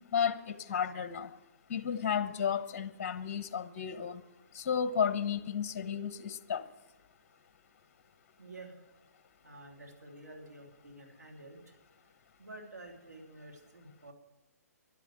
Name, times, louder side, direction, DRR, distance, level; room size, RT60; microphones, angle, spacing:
voice 1, 0.1-1.3 1.7-4.2 4.5-6.6, left 7 dB, 45° left, 13 dB, 1.0 m, -33 dB
voice 2, 8.4-8.9 9.4-12.1 12.4-14.1, right 2 dB, 90° right, 1 dB, 2.9 m, -50 dB
11.5 x 11.0 x 7.4 m, 1.0 s
hypercardioid pair, 140°, 9 cm